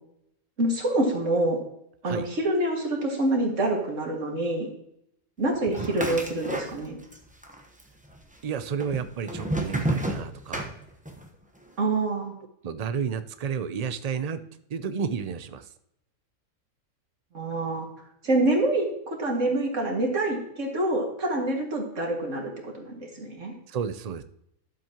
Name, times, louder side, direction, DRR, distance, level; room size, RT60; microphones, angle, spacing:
voice 1, 0.6-1.6 2.0-4.7 5.4-7.0 11.8-12.4 17.3-17.9 18.2-23.5, right 2 dB, 70° right, 0 dB, 2.4 m, -26 dB
sound 1, 5.7-7.2 7.4-8.2 8.8-11.3, right 1 dB, 5° right, 0.9 m, -30 dB
voice 2, 8.4-10.7 12.6-14.4 14.7-15.7 23.7-24.2, right 6 dB, 50° right, 11 dB, 0.4 m, -31 dB
12.0 x 7.4 x 2.9 m, 0.76 s
omnidirectional pair, 1.4 m